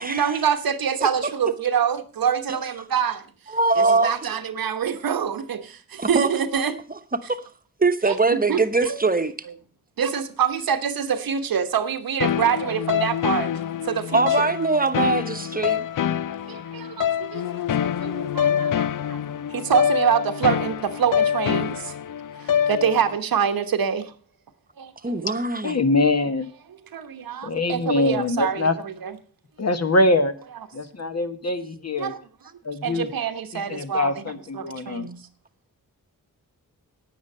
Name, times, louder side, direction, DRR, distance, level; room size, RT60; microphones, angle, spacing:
voice 1, 0.0-3.2 3.8-6.7 8.0-9.0 10.0-13.5 13.9-14.5 16.5-19.2 19.5-21.9 22.4-24.1 24.8-25.4 26.9-29.1 32.0-32.2 32.8-34.2 34.5-35.2, right 7 dB, 85° right, 1.1 m, -26 dB
voice 2, 3.5-4.1 6.0-6.3 7.3-7.4 7.8-9.3 14.1-15.8 25.0-25.8, right 3 dB, 25° right, 1.0 m, -22 dB
sound 1, 12.2-23.2, left 9 dB, 65° left, 0.5 m, -25 dB
voice 3, 25.6-26.5 27.4-28.8 29.6-30.3 30.7-32.1 32.6-33.1 33.5-35.1, left 2 dB, 45° left, 1.4 m, -23 dB
9.5 x 9.4 x 5.5 m
cardioid pair, 65°, 34 cm